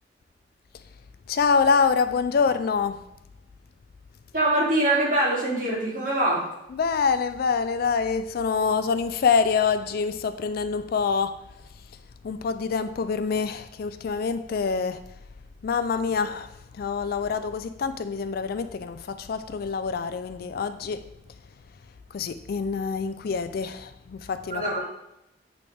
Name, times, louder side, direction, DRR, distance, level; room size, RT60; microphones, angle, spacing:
voice 1, 1.3-3.1 6.7-11.4 12.2-15.0 15.6-21.0 22.1-24.8, left 5 dB, 60° left, 0.3 m, -26 dB
voice 2, 4.3-6.5 24.5-24.9, right 1 dB, 50° right, 2.4 m, -23 dB
8.3 x 3.5 x 3.3 m
head